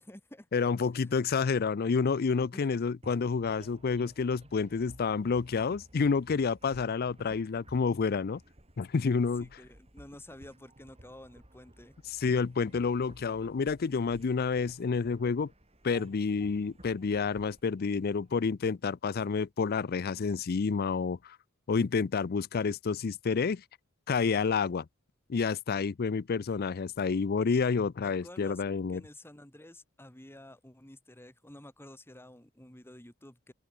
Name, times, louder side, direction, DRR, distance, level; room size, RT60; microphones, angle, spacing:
voice 1, 0.0-0.5 0.9-1.1 2.5-2.7 9.4-12.4 28.0-28.6 28.9-33.5, left 1 dB, 10° left, 2.9 m, -51 dB
voice 2, 0.5-8.4 8.8-9.5 12.2-15.5 15.8-21.4 21.7-23.6 24.1-24.9 25.3-29.0, left 5 dB, 45° left, 0.4 m, -29 dB
sound 1, 3.0-18.7, right 1 dB, 30° right, 7.8 m, -55 dB
open air
head